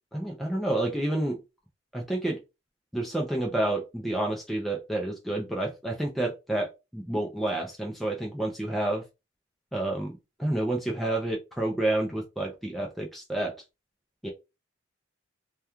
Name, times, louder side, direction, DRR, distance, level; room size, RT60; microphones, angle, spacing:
voice 1, 0.1-1.4 1.9-2.4 2.9-9.0 9.7-10.1 10.4-13.5 14.2-14.3, right 1 dB, ahead, -1 dB, 0.4 m, -29 dB
2.3 x 2.2 x 2.9 m, 0.25 s
head